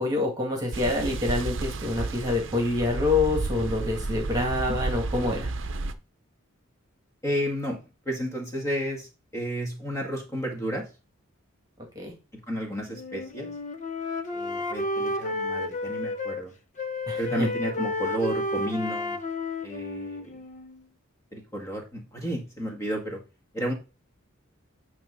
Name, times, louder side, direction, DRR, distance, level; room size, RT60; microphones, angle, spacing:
voice 1, 0.0-5.5 12.0-12.1 17.1-17.5, left 2 dB, 20° right, 0 dB, 2.0 m, -26 dB
sound 1, 0.7-5.9, right 3 dB, 60° right, 0.8 m, -32 dB
voice 2, 7.2-7.8 8.0-10.9 12.5-13.5 14.3-16.5 17.2-19.2 19.6-20.3 21.3-23.2 23.5-23.7, equal, 15° left, 1 dB, 1.8 m, -32 dB
Wind instrument woodwind instrument, 12.9-16.4 16.8-20.8, left 2 dB, 35° left, 0.9 m, -31 dB
9.2 x 3.2 x 5.3 m, 0.29 s
head